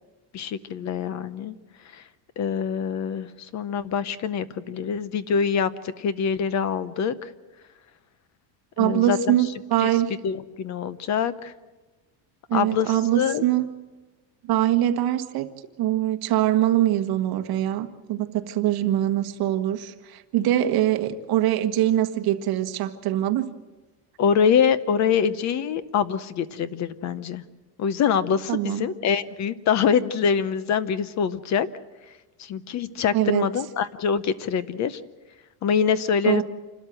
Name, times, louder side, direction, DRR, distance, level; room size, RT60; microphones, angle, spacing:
voice 1, 0.3-1.6 1.9-2.0 2.4-7.3 8.8-9.4 9.8-9.9 10.2-11.5 12.5-13.4 24.2-27.4 27.8-31.7 32.4-35.0 35.6-36.4, left 7 dB, 35° left, 16 dB, 0.8 m, -24 dB
voice 2, 8.8-10.1 12.5-13.7 14.5-15.5 15.8-23.5 28.5-28.8 33.1-33.5 36.2-36.4, right 13 dB, 45° right, 7 dB, 1.4 m, -23 dB
28.0 x 13.0 x 7.7 m, 1.2 s
cardioid pair, 165°, 49 cm